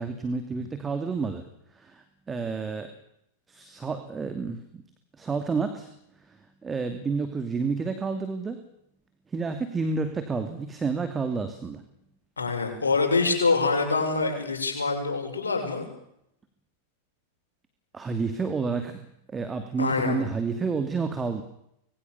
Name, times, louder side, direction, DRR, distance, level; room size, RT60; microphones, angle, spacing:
voice 1, 0.0-1.5 1.7-2.9 3.5-4.8 5.2-5.9 6.3-8.6 9.3-11.8 17.9-19.0 19.3-21.4, right 4 dB, 15° right, 8 dB, 2.6 m, -30 dB
voice 2, 12.4-15.9 19.8-20.2, left 4 dB, 75° left, 4 dB, 6.8 m, -25 dB
25.5 x 22.5 x 7.1 m, 0.77 s
figure-of-eight pair, 90°, 0 cm